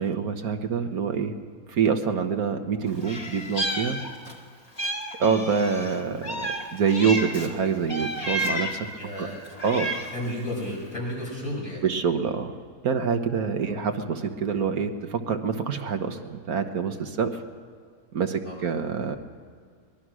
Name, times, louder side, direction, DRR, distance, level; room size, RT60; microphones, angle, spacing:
voice 1, 0.0-1.3 1.7-4.0 5.2-8.9 9.2-9.3 9.6-9.9 11.8-12.5 12.8-17.4 18.1-19.2, right 6 dB, 65° right, 6 dB, 1.6 m, -26 dB
Meow, 3.0-4.4 4.8-7.5 7.9-8.9 9.4-10.3, equal, 25° left, 1.9 m, -31 dB
voice 2, 9.0-9.4 9.7-11.8 13.6-13.7 18.4-18.6, left 1 dB, 60° left, -4 dB, 7.5 m, -33 dB
23.5 x 21.0 x 6.3 m, 2.1 s
omnidirectional pair, 1.7 m